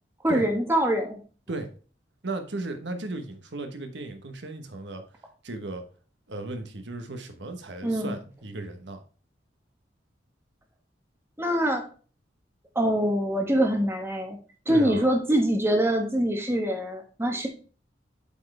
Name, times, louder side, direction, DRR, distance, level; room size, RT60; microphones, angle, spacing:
voice 1, 0.2-1.2 7.8-8.1 11.4-11.8 12.7-14.4 14.7-17.5, right 1 dB, 15° right, 2 dB, 1.3 m, -24 dB
voice 2, 2.2-5.1 5.4-5.9 6.3-9.0 14.7-15.1, right 2 dB, 70° right, 6 dB, 1.1 m, -35 dB
8.2 x 4.5 x 3.3 m, 0.38 s
head